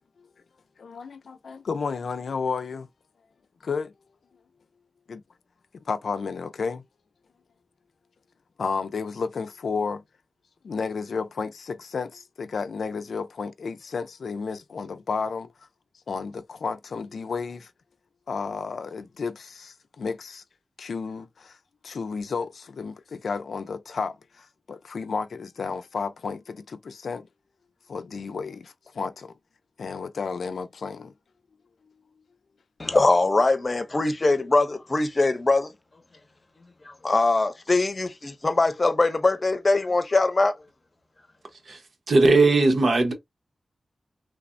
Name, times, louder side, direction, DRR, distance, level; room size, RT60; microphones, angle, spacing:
voice 1, 0.8-2.9 3.6-3.9 5.1-5.2 5.9-6.8 8.6-10.0 10.6-15.5 16.1-17.7 18.3-20.4 20.8-21.6 21.8-27.3 27.9-29.3 29.8-31.1, left 5 dB, 90° left, 0.4 m, -32 dB
voice 2, 32.8-35.7 36.9-40.6, left 2 dB, 35° left, 0.6 m, -22 dB
voice 3, 42.1-43.1, right 3 dB, 70° right, 0.8 m, -18 dB
3.2 x 2.1 x 2.5 m
wide cardioid pair, 90°, 0 cm